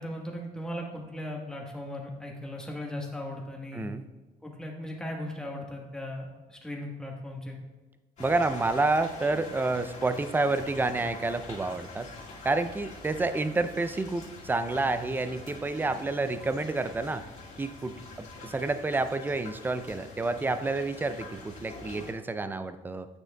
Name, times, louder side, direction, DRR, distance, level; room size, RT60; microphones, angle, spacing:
voice 1, 0.0-3.9 4.4-7.6, left 1 dB, 5° left, -1 dB, 1.3 m, -37 dB
sound 1, 8.2-22.1, left 3 dB, 45° left, 2.1 m, -45 dB
voice 2, 8.2-12.1 12.4-17.2 17.6-23.1, right 3 dB, 10° right, 11 dB, 0.4 m, -29 dB
9.0 x 6.2 x 2.2 m, 1.2 s
cardioid pair, 110°, 17 cm